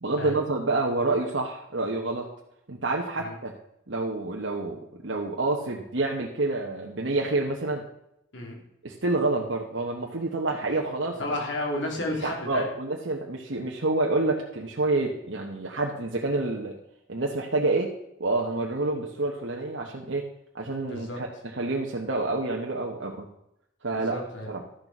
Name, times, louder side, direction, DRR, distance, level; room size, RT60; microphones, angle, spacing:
voice 1, 0.0-2.3 2.7-3.5 3.9-7.8 8.8-11.4 12.2-16.8 17.1-17.9 18.2-20.3 20.5-21.3 21.5-23.3 23.8-24.2 24.5-24.6, right 2 dB, 70° right, -1 dB, 1.1 m, -28 dB
voice 2, 11.2-12.7 20.9-21.2 23.9-24.5, left 1 dB, 70° left, 0 dB, 3.1 m, -32 dB
13.0 x 6.7 x 6.0 m, 0.81 s
head